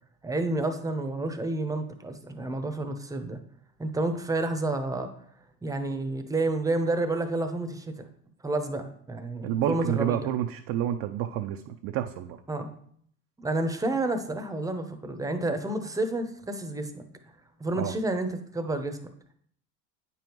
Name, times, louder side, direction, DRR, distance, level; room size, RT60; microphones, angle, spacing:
voice 1, 0.2-3.4 3.8-5.1 5.6-8.1 8.4-10.3 12.5-12.7 13.4-17.1 17.6-19.0, right 2 dB, 5° right, 6 dB, 0.8 m, -30 dB
voice 2, 9.4-12.4 17.8-17.9, right 11 dB, 50° right, 5 dB, 0.6 m, -29 dB
8.7 x 5.4 x 3.0 m, 0.64 s
hypercardioid pair, 85°, 48 cm